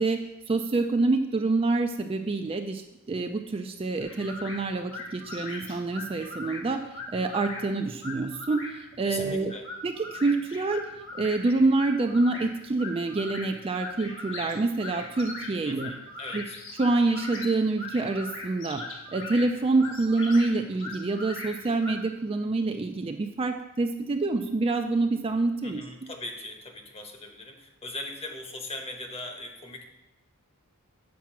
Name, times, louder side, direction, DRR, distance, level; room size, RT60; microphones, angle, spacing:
voice 1, 0.0-2.8 3.1-6.8 7.1-9.5 9.8-15.9 16.3-16.4 16.8-18.8 19.1-25.8, right 3 dB, 25° right, 5 dB, 0.4 m, -26 dB
sound 1, 4.0-22.1, left 2 dB, 60° left, 1.3 m, -41 dB
voice 2, 9.0-9.7 15.6-16.6 25.6-29.8, left 2 dB, 25° left, 4 dB, 1.0 m, -40 dB
7.3 x 4.7 x 6.0 m, 0.93 s
head